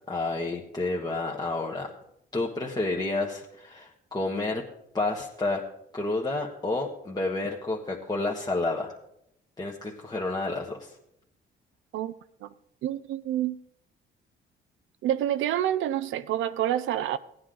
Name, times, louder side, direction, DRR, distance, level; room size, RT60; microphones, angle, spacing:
voice 1, 0.1-1.9 2.3-4.6 4.9-5.6 5.9-8.9 9.6-10.9, left 2 dB, 20° left, 1.3 m, -30 dB
voice 2, 12.8-13.6 15.0-17.2, right 11 dB, 80° right, 0.5 m, -27 dB
15.5 x 9.5 x 3.9 m
cardioid pair, 90°, 20 cm